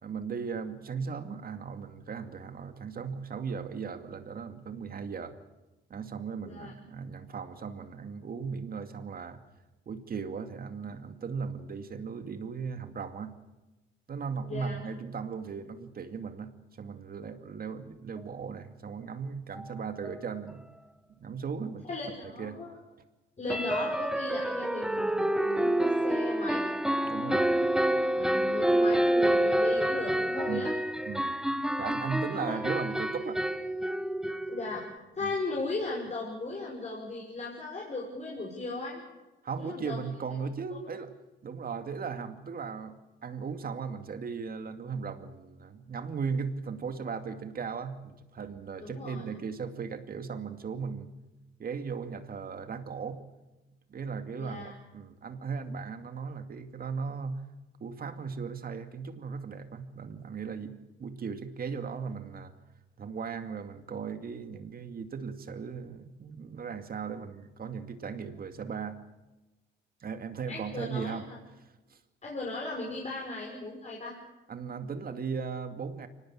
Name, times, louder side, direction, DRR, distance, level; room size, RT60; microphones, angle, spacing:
voice 1, 0.0-5.4 5.9-9.4 9.9-13.3 14.1-20.6 21.2-21.9 22.4-22.6 27.0-27.6 30.5-30.7 31.1-31.4 31.8-33.4 35.2-35.3 39.4-41.1 41.4-43.0 43.2-51.1 51.6-53.2 53.9-57.4 57.8-62.5 63.0-69.0 70.0-71.3 71.9-72.0 74.5-76.1, right 5 dB, 50° right, 8 dB, 2.4 m, -37 dB
voice 2, 6.4-6.7 14.4-14.8 21.8-22.8 23.4-26.7 28.1-30.7 32.4-32.6 34.5-34.9 35.1-39.0 39.6-40.0 40.7-40.8 48.8-49.2 54.4-54.7 70.5-71.4 72.2-74.2, left 2 dB, 35° left, -2 dB, 6.0 m, -37 dB
sound 1, 19.5-19.6 20.0-20.2 20.5-20.6 23.5-35.0, right 1 dB, 5° right, 1.1 m, -28 dB
24.5 x 19.0 x 8.8 m, 1.1 s
cardioid pair, 90°, 20 cm